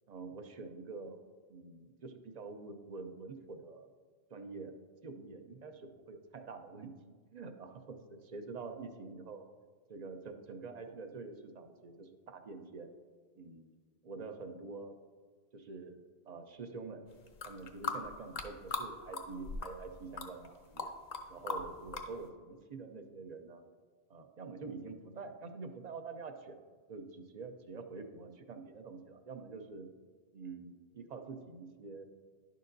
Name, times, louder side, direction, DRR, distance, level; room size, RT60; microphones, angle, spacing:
voice 1, 0.1-1.2 1.5-3.9 4.3-4.7 5.0-6.9 7.3-9.5 9.9-12.9 13.3-13.7 14.0-15.0 15.5-17.0 17.4-20.9 21.3-23.6 24.1-26.6 26.9-29.9 30.3-32.0, right 4 dB, 45° right, 7 dB, 0.6 m, -46 dB
sound 1, 17.3-18.9 19.1-19.9 20.2-21.2 21.5-22.1, left 3 dB, 45° left, 0.7 m, -38 dB
10.5 x 6.6 x 2.6 m, 1.5 s
omnidirectional pair, 1.1 m